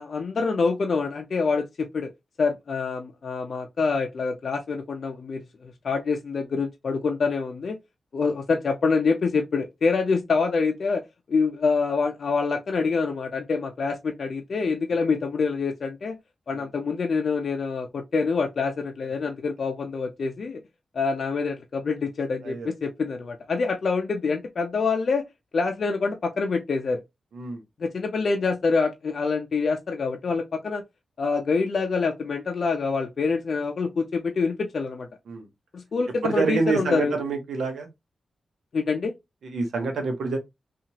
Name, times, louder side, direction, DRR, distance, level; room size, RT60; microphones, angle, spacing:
voice 1, 0.0-2.1 2.4-7.8 8.1-11.0 11.3-16.2 16.5-20.6 20.9-25.2 25.5-27.0 27.8-30.8 31.2-35.1 35.7-37.1 38.7-39.1, left 4 dB, 70° left, 0.4 m, -26 dB
voice 2, 36.2-37.9 39.4-40.4, right 4 dB, 90° right, 0.8 m, -27 dB
2.9 x 2.4 x 2.7 m
cardioid pair, 65°, 0 cm